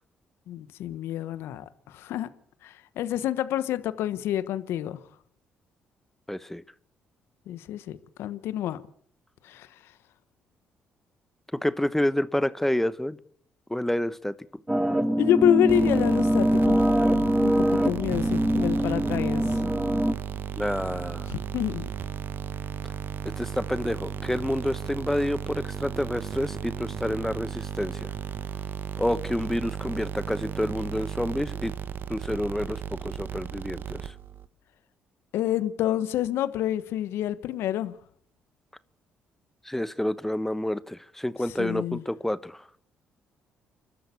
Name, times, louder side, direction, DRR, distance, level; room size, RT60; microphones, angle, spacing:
voice 1, 0.5-2.3 2.6-5.0 7.5-8.8 9.4-9.7 15.2-16.8 17.4-19.6 21.3-21.9 35.3-37.9 41.6-42.0, left 11 dB, 75° left, 14 dB, 1.2 m, -28 dB
voice 2, 6.3-6.6 11.6-13.2 13.7-14.4 20.6-21.3 23.3-28.1 29.0-31.7 32.1-34.1 39.6-42.7, left 1 dB, 5° left, 15 dB, 1.1 m, -29 dB
sound 1, 14.7-20.1, equal, 10° right, 1.9 m, -23 dB
sound 2, 15.7-34.5, right 8 dB, 55° right, 1.1 m, -35 dB
29.5 x 12.5 x 8.4 m, 0.64 s
hypercardioid pair, 55°, 4 cm